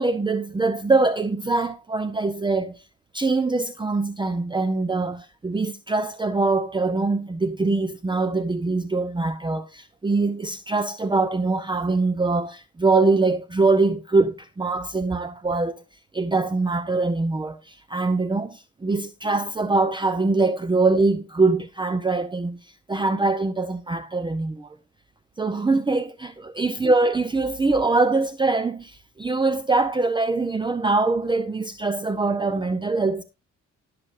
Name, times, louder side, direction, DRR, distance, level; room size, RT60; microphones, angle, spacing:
voice 1, 0.0-2.8 3.1-15.8 16.1-24.8 25.4-33.2, right 3 dB, 15° right, 0.8 m, -23 dB
18.0 x 6.8 x 2.6 m
cardioid pair, 90°, 30 cm